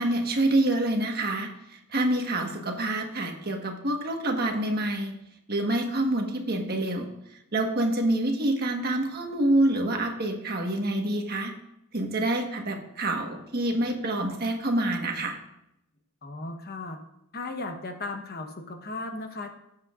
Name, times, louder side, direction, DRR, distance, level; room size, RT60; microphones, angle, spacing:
voice 1, 0.0-5.1 5.5-7.1 7.5-11.5 11.9-15.4, right 1 dB, 45° right, 2 dB, 1.4 m, -27 dB
voice 2, 16.2-17.0 17.3-19.5, left 2 dB, 45° left, 5 dB, 1.0 m, -36 dB
18.0 x 7.6 x 2.5 m, 0.81 s
head